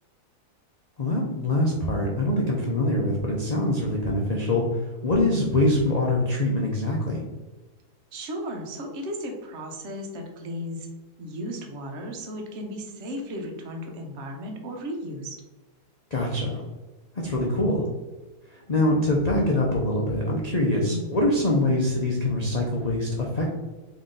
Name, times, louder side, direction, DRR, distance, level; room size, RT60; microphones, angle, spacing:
voice 1, 1.0-7.2 16.1-16.6 17.1-17.9 18.4-23.5, left 1 dB, 70° left, -3 dB, 0.4 m, -24 dB
voice 2, 5.4-5.8 8.1-10.9 11.2-15.4 20.9-21.2, equal, 55° right, 2 dB, 1.0 m, -35 dB
4.0 x 3.1 x 3.7 m, 1.2 s
omnidirectional pair, 1.7 m